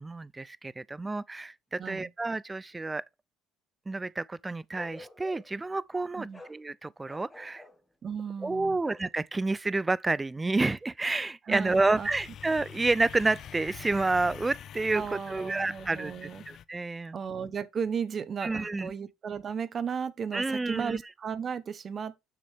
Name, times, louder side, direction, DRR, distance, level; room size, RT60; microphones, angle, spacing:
voice 1, 0.0-3.0 3.9-7.6 8.4-17.2 18.4-18.9 20.3-21.0, right 3 dB, 15° right, 0.4 m, -29 dB
voice 2, 1.8-2.1 6.2-6.4 8.0-8.8 11.5-12.1 14.9-16.4 17.1-22.1, right 7 dB, 40° right, 0.9 m, -35 dB
Bark, 4.7-5.6 6.3-6.6 7.0-7.8 8.8-9.1, left 1 dB, 10° left, 1.7 m, -48 dB
sound 1, 11.5-16.6, left 9 dB, 55° left, 0.4 m, -46 dB
6.9 x 6.3 x 3.5 m
supercardioid pair, 85°, 0 cm